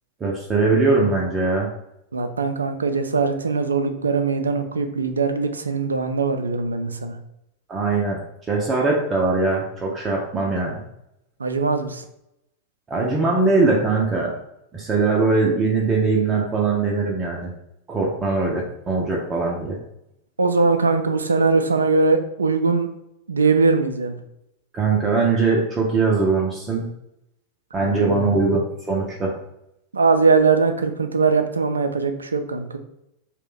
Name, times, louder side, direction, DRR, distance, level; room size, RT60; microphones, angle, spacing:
voice 1, 0.2-1.7 7.7-8.2 8.5-10.8 12.9-14.3 14.7-17.5 17.9-19.8 24.7-26.8 27.7-28.6 28.9-29.4, right 3 dB, 20° right, -2 dB, 0.5 m, -21 dB
voice 2, 2.1-7.2 11.4-12.0 20.4-22.9 23.3-24.2 27.8-28.3 29.9-32.8, right 4 dB, 75° right, 7 dB, 0.3 m, -21 dB
2.4 x 2.1 x 3.6 m, 0.82 s
figure-of-eight pair, 90°, 0 cm